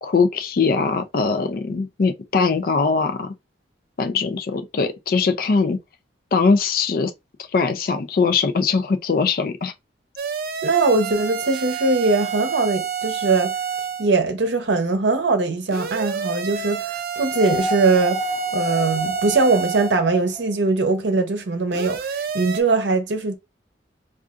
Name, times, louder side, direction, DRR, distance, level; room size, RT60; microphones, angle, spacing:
voice 1, 0.0-3.3 4.0-5.8 6.3-7.1 7.5-9.7, left 4 dB, 50° left, 0.4 m, -21 dB
sound 1, 10.2-14.1 15.7-20.0 21.7-22.6, right 7 dB, 55° right, 0.4 m, -29 dB
voice 2, 10.6-13.5 14.0-18.2 18.5-23.4, right 3 dB, 90° right, 0.6 m, -21 dB
sound 2, 17.3-20.5 21.9-22.0, left 2 dB, 15° left, 0.8 m, -30 dB
3.8 x 2.4 x 2.4 m
head